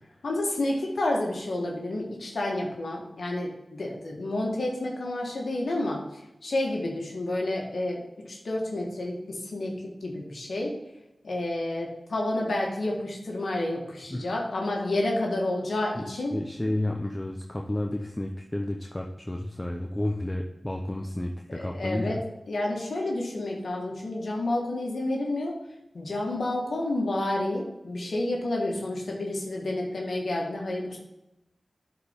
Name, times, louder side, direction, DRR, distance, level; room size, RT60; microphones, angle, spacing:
voice 1, 0.2-8.0 8.3-9.7 10.0-10.8 11.2-16.4 21.5-22.2 22.5-25.5 25.9-31.0, left 1 dB, 85° left, -1 dB, 1.7 m, -30 dB
voice 2, 16.0-22.2, left 1 dB, 20° left, 1 dB, 0.8 m, -31 dB
11.5 x 4.5 x 3.7 m, 0.94 s
cardioid pair, 45°, 0 cm